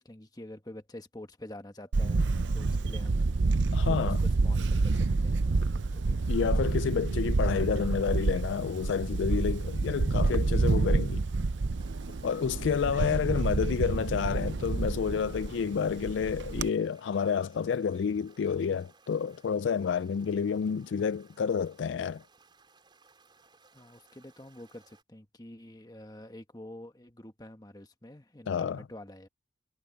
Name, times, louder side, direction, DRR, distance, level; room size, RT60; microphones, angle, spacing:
voice 1, 0.0-3.4 3.8-6.7 12.4-12.7 23.7-29.3, left 1 dB, 20° left, 1.4 m, -47 dB
Camera, 1.9-16.7, right 3 dB, 70° right, 0.6 m, -28 dB
voice 2, 3.7-4.2 6.3-11.2 12.2-22.2 28.5-28.8, left 6 dB, 70° left, 0.3 m, -29 dB
sound 1, 11.8-25.0, right 4 dB, 25° right, 5.1 m, -62 dB
head